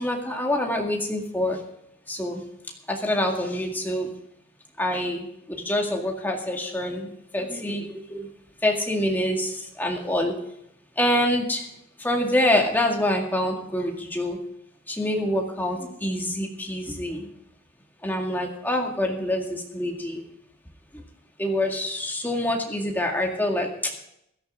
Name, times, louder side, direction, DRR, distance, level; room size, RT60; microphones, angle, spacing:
voice 1, 0.0-1.6 2.1-2.4 2.9-4.1 4.8-8.3 8.6-10.3 11.0-11.7 12.0-14.4 14.9-17.2 18.0-20.2 21.4-23.9, left 1 dB, 10° left, 0 dB, 2.0 m, -26 dB
16.0 x 13.5 x 3.7 m, 0.78 s
head